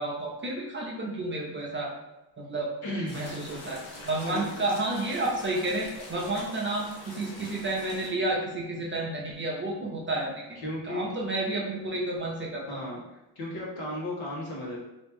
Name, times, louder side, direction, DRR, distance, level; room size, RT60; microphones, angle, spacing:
voice 1, 0.0-1.9 2.5-2.7 3.1-3.8 4.0-10.3 10.8-12.8, right 2 dB, 25° right, -3 dB, 0.7 m, -31 dB
voice 2, 2.8-3.2 4.3-4.4 10.6-11.1 12.7-13.0 13.3-14.8, left 1 dB, 55° left, -4 dB, 1.4 m, -34 dB
sound 1, 3.1-8.1, left 2 dB, 80° left, 1.2 m, -44 dB
3.0 x 3.0 x 3.6 m, 0.98 s
cardioid pair, 120°, 45 cm